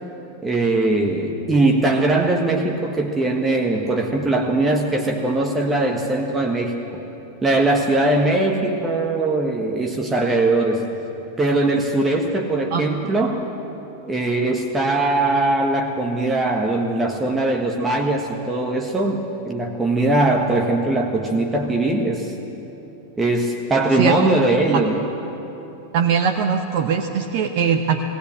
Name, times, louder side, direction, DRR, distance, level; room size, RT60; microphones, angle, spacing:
voice 1, 0.4-7.0 7.4-10.9 11.4-13.5 14.0-22.3 23.2-25.0, right 2 dB, 15° right, 1 dB, 1.5 m, -20 dB
voice 2, 25.9-28.0, right 7 dB, 45° right, 4 dB, 1.0 m, -20 dB
18.5 x 18.5 x 7.7 m, 3.0 s
figure-of-eight pair, 90°, 0 cm